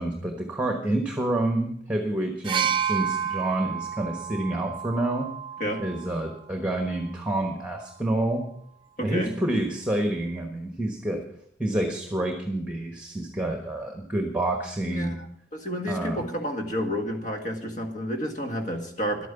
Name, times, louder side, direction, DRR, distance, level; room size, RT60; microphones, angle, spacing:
voice 1, 0.0-5.3 5.8-8.5 9.0-11.2 11.6-15.2 15.9-16.3, right 1 dB, 5° right, 4 dB, 1.3 m, -28 dB
sound 1, 2.4-6.3 7.3-7.4, right 8 dB, 30° right, 0.7 m, -30 dB
voice 2, 9.0-9.3 14.9-15.1 15.5-19.3, equal, 45° left, 4 dB, 1.9 m, -30 dB
11.5 x 9.2 x 7.0 m, 0.68 s
head